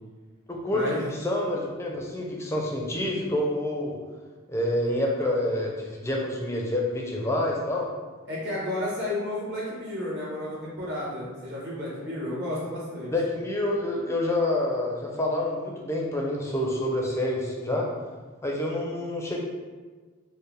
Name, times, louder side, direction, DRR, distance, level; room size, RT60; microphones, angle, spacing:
voice 1, 0.5-0.8 1.1-4.0 4.5-7.9 13.1-17.9 18.4-19.4, left 1 dB, 15° left, -1 dB, 0.4 m, -27 dB
voice 2, 8.3-13.1, left 1 dB, 55° right, -7 dB, 1.2 m, -32 dB
4.4 x 2.0 x 3.3 m, 1.4 s
head